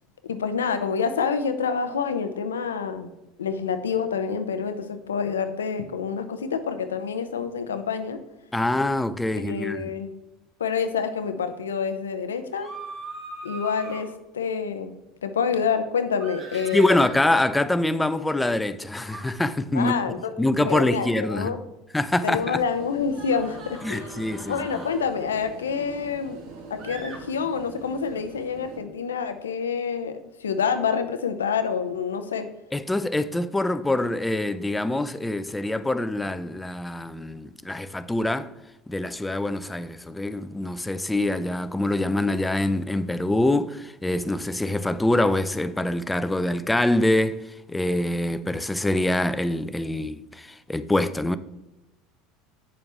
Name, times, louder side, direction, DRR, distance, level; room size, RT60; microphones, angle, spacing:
voice 1, 0.2-3.1 3.4-8.2 9.3-10.1 10.6-12.7 13.4-14.9 15.2-17.0 19.7-20.3 20.6-21.6 22.2-24.1 24.5-26.4 26.7-32.5, left 6 dB, 90° left, 0.7 m, -27 dB
voice 2, 8.5-9.9 16.7-19.9 20.4-21.5 21.9-22.6 23.8-24.6 32.7-38.5 38.9-47.4 47.7-51.4, left 1 dB, 10° left, 0.5 m, -25 dB
sound 1, 12.5-14.0 16.2-17.3 19.0-19.3 20.8-21.2 23.1-25.0 26.8-27.2, right 3 dB, 50° right, 2.5 m, -41 dB
sound 2, 22.3-28.8, right 3 dB, 70° right, 1.6 m, -42 dB
8.7 x 6.9 x 3.4 m
hypercardioid pair, 75°, 0 cm